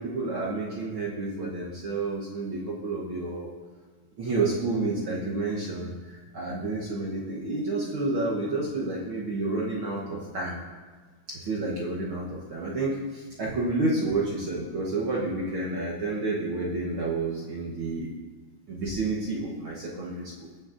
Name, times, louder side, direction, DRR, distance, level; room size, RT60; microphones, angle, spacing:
voice 1, 0.0-3.5 4.2-10.5 11.3-18.1 18.7-20.5, right 2 dB, 65° right, -5 dB, 1.3 m, -30 dB
15.5 x 7.1 x 2.5 m, 1.4 s
omnidirectional pair, 3.6 m